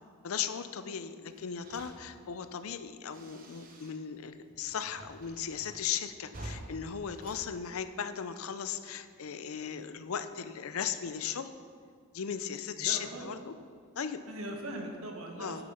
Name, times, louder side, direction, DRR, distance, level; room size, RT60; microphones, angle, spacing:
voice 1, 0.2-11.5 12.1-13.5 14.0-14.2 15.4-15.6, left 8 dB, 75° left, 11 dB, 0.5 m, -37 dB
sound 1, 1.3-4.2 4.5-8.4, right 1 dB, 40° right, 1.0 m, -49 dB
voice 2, 12.8-13.3 14.3-15.6, right 1 dB, 75° right, 2 dB, 1.5 m, -40 dB
9.8 x 6.7 x 5.7 m, 2.1 s
head